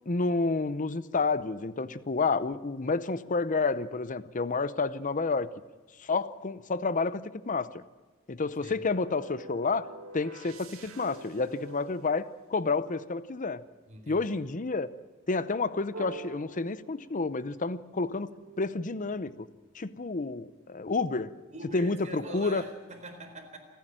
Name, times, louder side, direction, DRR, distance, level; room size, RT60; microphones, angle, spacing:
voice 1, 0.1-5.5 6.0-7.8 8.3-9.9 10.1-13.6 14.1-14.9 15.3-18.3 18.6-19.3 19.7-21.3 21.7-22.6, left 3 dB, 40° left, 15 dB, 0.7 m, -30 dB
sound 1, 8.9-13.1 15.9-17.4 18.0-19.7, right 2 dB, 90° right, 2.1 m, -47 dB
voice 2, 13.9-14.3 21.5-23.6, right 1 dB, 35° right, 3 dB, 4.2 m, -43 dB
28.5 x 10.5 x 8.9 m, 1.2 s
head